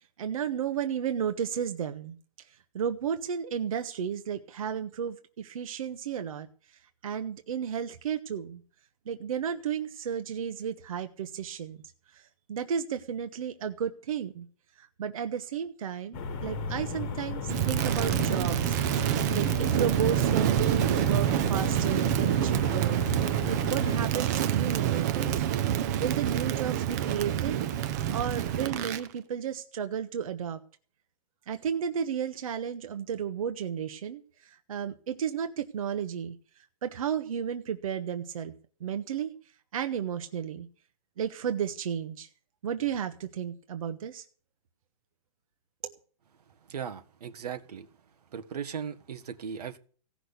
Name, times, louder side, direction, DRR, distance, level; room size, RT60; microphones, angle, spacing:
voice 1, 0.2-2.2 2.7-6.5 7.0-8.6 9.1-11.8 12.1-12.2 12.5-14.5 14.8-18.8 19.3-25.4 26.0-27.6 28.1-30.6 31.5-36.4 36.8-38.5 38.8-39.3 39.7-40.7 41.2-42.3 42.6-44.2 45.8-45.9, right 8 dB, 60° right, 7 dB, 1.2 m, -33 dB
sound 1, 16.1-24.1, left 4 dB, 25° left, 1.4 m, -36 dB
Crackle, 17.5-29.1, right 11 dB, 25° right, 0.7 m, -27 dB
voice 2, 46.7-47.9 48.3-49.8, right 7 dB, 80° right, 7 dB, 1.5 m, -37 dB
17.0 x 6.2 x 8.3 m, 0.43 s
hypercardioid pair, 170°, 20 cm